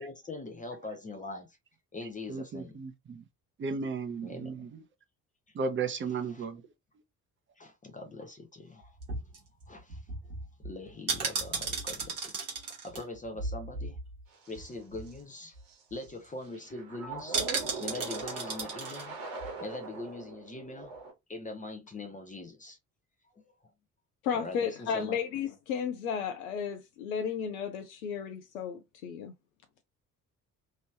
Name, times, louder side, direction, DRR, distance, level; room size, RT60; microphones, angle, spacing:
voice 1, 0.0-1.6 1.9-2.8 4.2-4.7 6.3-6.4 7.6-9.0 9.7-10.0 10.6-12.4 12.6-14.0 14.5-15.6 15.9-17.4 17.8-19.2 19.6-21.0 21.3-22.8 23.3-23.4 24.3-25.2, left 2 dB, 20° left, 0.8 m, -42 dB
voice 2, 2.3-3.2 3.6-4.8 5.5-6.6, right 4 dB, 25° right, 0.8 m, -34 dB
sound 1, 8.8-14.2 14.5-14.6 14.9-15.2 15.6-15.7 15.9-16.3 17.3-19.1 19.4-19.5, right 4 dB, 80° right, 1.1 m, -35 dB
sound 2, 14.3-14.7 15.1-15.2 15.7-16.1 16.4-21.1, right 3 dB, 50° right, 1.3 m, -41 dB
voice 3, 24.2-29.4, left 7 dB, 70° left, 0.5 m, -33 dB
3.1 x 2.7 x 2.8 m
figure-of-eight pair, 45°, 43 cm